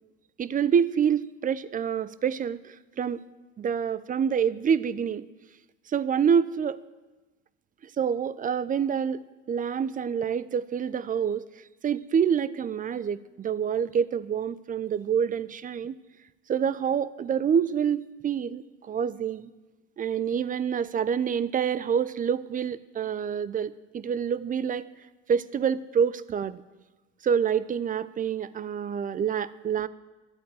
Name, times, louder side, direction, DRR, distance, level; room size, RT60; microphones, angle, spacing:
voice 1, 0.4-3.2 3.6-5.2 5.9-6.8 8.0-11.5 11.8-16.0 16.5-19.5 20.0-24.8 25.3-26.6 27.2-29.9, right 7 dB, 25° right, 17 dB, 0.6 m, -27 dB
11.5 x 8.8 x 7.8 m, 1.2 s
hypercardioid pair, 80°, 36 cm